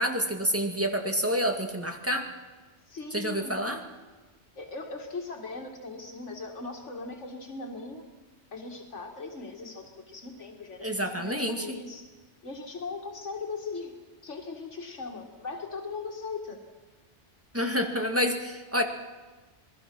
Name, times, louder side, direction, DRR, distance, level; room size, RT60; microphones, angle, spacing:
voice 1, 0.0-2.3 3.1-3.8 10.8-11.7 17.5-18.8, equal, 10° right, 4 dB, 1.9 m, -28 dB
voice 2, 2.9-3.6 4.6-8.0 8.5-12.1 12.4-13.9 14.2-16.6, left 4 dB, 85° left, 2 dB, 2.3 m, -39 dB
27.0 x 20.5 x 6.1 m, 1.3 s
omnidirectional pair, 1.2 m